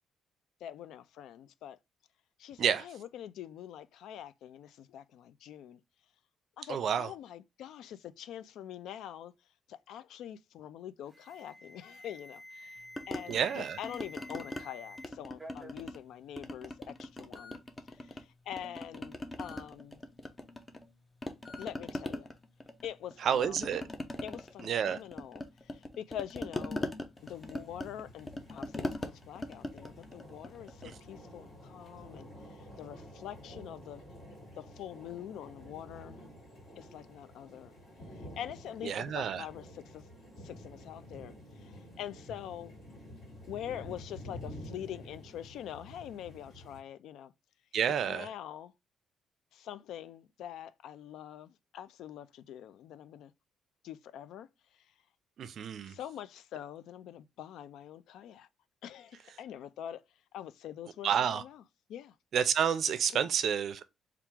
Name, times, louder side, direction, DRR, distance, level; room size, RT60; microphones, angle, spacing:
voice 1, 0.6-1.8 2.4-5.8 6.6-9.3 9.7-17.6 17.9-20.0 21.6-22.3 22.8-23.9 24.2-26.9 27.2-34.0 34.6-36.2 36.8-37.7 38.2-40.1 40.4-42.7 43.5-47.3 48.1-48.7 49.5-53.3 53.8-54.5 55.8-58.5 58.8-60.0 60.3-61.6 61.9-62.1 63.1-63.3, left 10 dB, 80° left, 0.3 m, -45 dB
voice 2, 6.7-7.1 13.3-13.8 23.2-23.8 24.6-25.0 38.8-39.5 47.7-48.3 55.4-56.0 61.0-61.4 62.3-63.8, right 8 dB, 55° right, 0.4 m, -29 dB
Alarm, 11.1-15.1 15.4-15.8 16.6-16.7 17.4-17.6 19.4-19.6 21.4-21.7, left 1 dB, 5° right, 0.8 m, -50 dB
sound 1, 13.0-14.6 15.0-16.1 16.4-18.2 18.5-20.9 21.2-31.0, left 1 dB, 20° left, 0.5 m, -41 dB
sound 2, 27.2-46.8, left 1 dB, 45° left, 2.2 m, -50 dB
3.5 x 2.4 x 4.4 m
cardioid pair, 140°, 0 cm